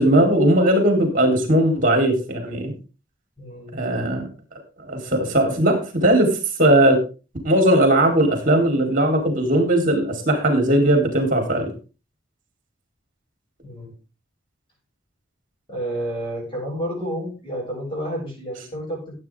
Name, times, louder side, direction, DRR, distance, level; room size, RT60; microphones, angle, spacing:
voice 1, 0.0-2.7 3.7-4.3 4.8-7.0 7.4-11.7, right 1 dB, 45° right, 4 dB, 4.2 m, -18 dB
voice 2, 3.4-3.8 13.6-13.9 15.7-19.1, equal, 25° left, -4 dB, 7.6 m, -30 dB
15.0 x 8.7 x 3.8 m, 0.33 s
head